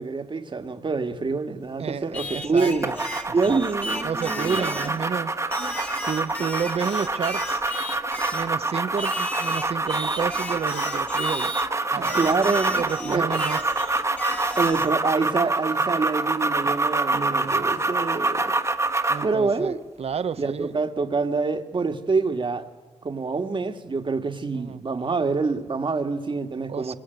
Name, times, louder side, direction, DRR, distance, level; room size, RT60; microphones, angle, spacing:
voice 1, 0.0-2.9 3.3-5.0 12.0-13.4 14.6-18.5 19.2-19.8 20.4-22.7 23.0-26.9, right 4 dB, 45° right, 1.7 m, -26 dB
voice 2, 1.8-2.9 3.5-3.6 4.0-7.6 8.3-11.5 11.9-12.3 12.8-13.6 13.9-14.1 17.1-17.7 19.1-20.7 24.5-24.8 26.7-26.9, right 6 dB, 60° right, 0.8 m, -31 dB
Singing, 2.1-5.0 5.5-8.5 9.0-11.7 12.0-14.9, left 1 dB, 15° left, 1.7 m, -34 dB
sound 1, 2.8-19.3, right 2 dB, 25° right, 1.3 m, -26 dB
25.0 x 22.0 x 9.2 m
cardioid pair, 90°, 12 cm